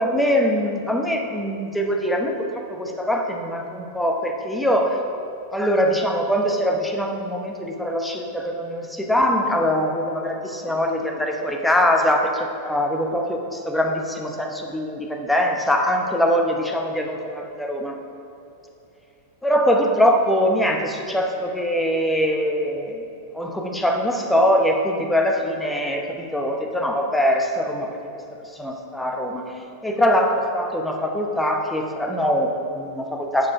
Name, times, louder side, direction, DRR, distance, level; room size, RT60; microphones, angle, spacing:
voice 1, 0.0-5.0 5.5-18.0 19.4-23.1 23.3-27.9 28.5-29.5 29.8-33.5, equal, 5° left, 1 dB, 0.8 m, -22 dB
6.5 x 4.9 x 5.6 m, 2.8 s
figure-of-eight pair, 90°, 0 cm